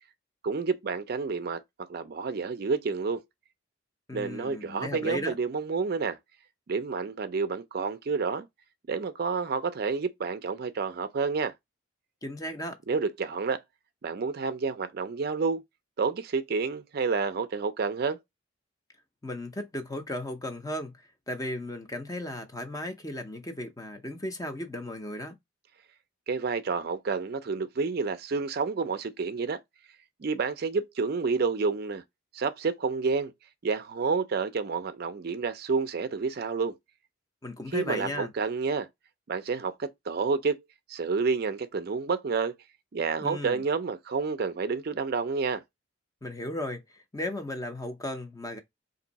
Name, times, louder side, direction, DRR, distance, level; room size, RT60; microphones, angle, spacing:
voice 1, 0.4-1.6 1.9-3.2 4.1-6.2 6.7-8.5 8.9-11.5 12.9-13.6 14.0-15.6 16.0-18.2 26.3-29.6 30.2-32.0 32.3-33.3 33.6-36.8 37.7-38.9 39.3-40.6 40.9-42.5 42.9-45.6, right 4 dB, 50° right, 0.4 m, -29 dB
voice 2, 4.1-5.4 12.2-12.8 19.2-25.3 37.4-38.3 43.2-43.6 46.2-48.6, left 1 dB, 15° left, 0.5 m, -35 dB
3.5 x 2.6 x 4.0 m
head